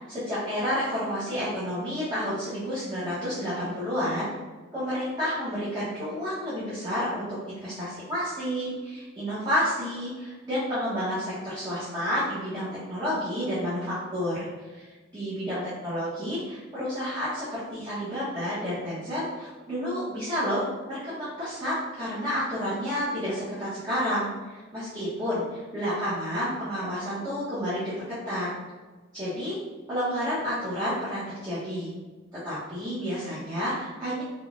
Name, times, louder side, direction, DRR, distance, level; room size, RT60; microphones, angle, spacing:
voice 1, 0.0-4.3 4.7-14.5 14.7-14.9 15.1-28.5 29.1-29.6 29.9-31.9 32.4-34.2, equal, 20° right, -13 dB, 0.8 m, -30 dB
3.6 x 2.2 x 2.4 m, 1.3 s
head